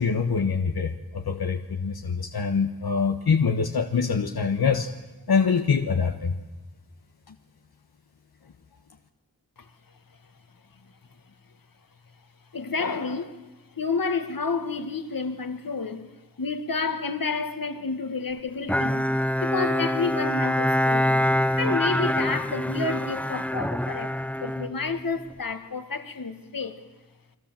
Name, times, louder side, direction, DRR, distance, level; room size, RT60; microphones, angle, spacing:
voice 1, 0.0-4.9 5.3-6.4, left 5 dB, 85° left, 1.4 m, -24 dB
voice 2, 12.5-13.4 13.8-16.1 16.4-19.1 19.4-21.3 21.6-26.8, left 4 dB, 65° left, 1.9 m, -30 dB
Bowed string instrument, 18.7-25.4, left 1 dB, 5° left, 0.9 m, -25 dB
30.0 x 22.0 x 7.6 m
wide cardioid pair, 60°, 37 cm